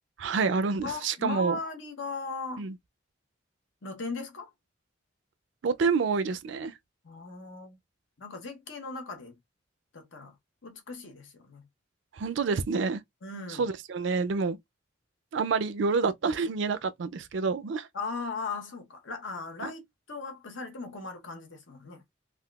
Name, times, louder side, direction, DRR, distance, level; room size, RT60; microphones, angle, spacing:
voice 1, 0.2-1.6 2.6-2.8 5.6-6.7 12.1-13.0 13.6-14.6 15.3-17.9 19.6-19.7, right 4 dB, 70° right, 0.4 m, -28 dB
voice 2, 0.8-2.7 3.8-4.5 7.0-7.8 8.2-9.4 9.9-10.4 10.6-11.6 13.2-13.7 17.9-19.8 20.1-22.0, left 3 dB, 75° left, 0.9 m, -38 dB
3.5 x 2.3 x 2.3 m
head